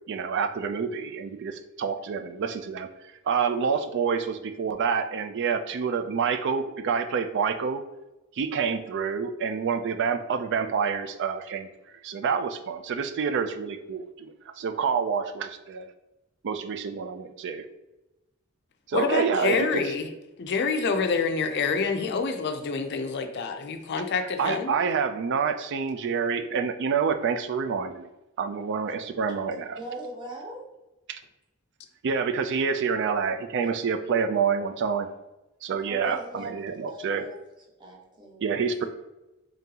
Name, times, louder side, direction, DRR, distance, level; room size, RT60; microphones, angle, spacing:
voice 1, 0.1-2.9 3.3-7.8 8.4-11.7 12.0-15.8 16.4-17.6 18.9-19.8 24.4-28.1 28.4-29.8 31.1-31.2 32.0-35.1 35.6-37.3 38.4-38.8, right 6 dB, 55° right, 9 dB, 0.4 m, -27 dB
voice 2, 18.9-20.1 20.4-24.8, left 4 dB, 55° left, 7 dB, 0.4 m, -27 dB
voice 3, 29.8-30.6 35.8-36.5 36.9-37.3 37.8-38.5 38.8-38.9, right 1 dB, 20° right, -3 dB, 0.9 m, -39 dB
3.8 x 3.5 x 2.8 m, 0.98 s
head